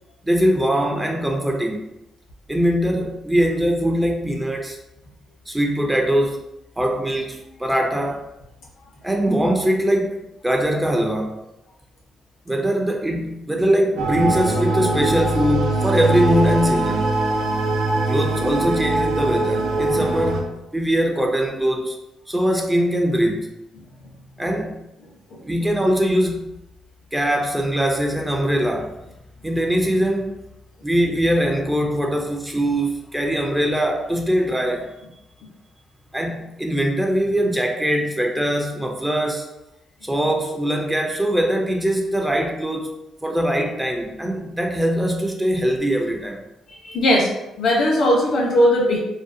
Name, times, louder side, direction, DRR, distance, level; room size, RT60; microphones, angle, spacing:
voice 1, 0.2-1.9 2.5-4.8 5.5-6.4 6.8-8.2 9.0-10.2 10.4-11.4 12.5-17.1 18.1-22.0 22.3-23.5 24.4-24.8 25.4-26.5 27.1-28.9 29.4-30.3 30.8-34.9 36.1-39.5 40.0-42.9 43.2-46.4, equal, 10° right, 2 dB, 0.4 m, -22 dB
sound 1, 14.0-20.4, right 2 dB, 90° right, 0.4 m, -22 dB
voice 2, 46.8-47.3 47.6-49.0, equal, 70° left, -2 dB, 0.8 m, -18 dB
2.6 x 2.0 x 2.5 m, 0.90 s
supercardioid pair, 60°, 0 cm